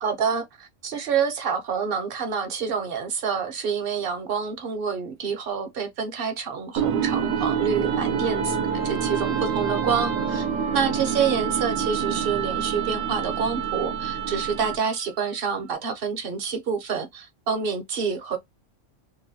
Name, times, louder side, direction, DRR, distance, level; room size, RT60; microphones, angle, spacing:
voice 1, 0.0-8.6 8.8-10.5 10.7-18.4, right 6 dB, 55° right, 0.8 m, -27 dB
sound 1, 6.8-14.9, right 7 dB, 85° right, 1.0 m, -27 dB
3.0 x 2.2 x 2.6 m
omnidirectional pair, 1.3 m